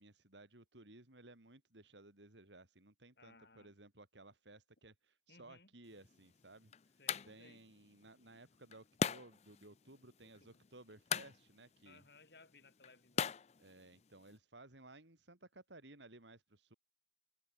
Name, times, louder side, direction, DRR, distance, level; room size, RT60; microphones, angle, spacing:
voice 1, 0.0-7.0 7.3-12.0 13.6-16.7, right 2 dB, 75° right, 3.7 m, -59 dB
voice 2, 3.2-3.7 5.3-5.7 7.0-7.6 10.2-10.6 11.9-13.4, left 3 dB, 60° left, 3.7 m, -63 dB
sound 1, 5.9-14.4, left 6 dB, 35° left, 0.5 m, -43 dB
head